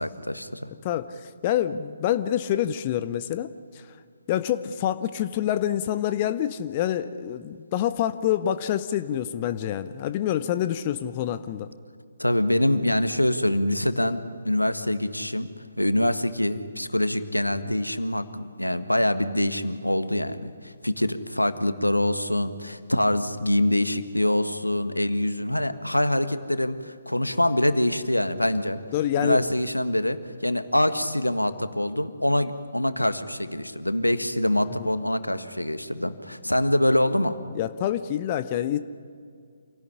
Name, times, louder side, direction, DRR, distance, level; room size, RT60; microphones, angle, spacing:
voice 1, 0.0-0.7 12.2-15.5 15.8-28.8 29.2-30.2 30.4-37.4, left 1 dB, 85° left, 11 dB, 1.5 m, -25 dB
voice 2, 0.8-3.9 4.3-11.7 28.9-29.4 34.8-34.9 37.5-38.8, left 11 dB, 30° left, 11 dB, 0.7 m, -27 dB
27.5 x 17.5 x 9.9 m, 2.2 s
figure-of-eight pair, 135°, 0 cm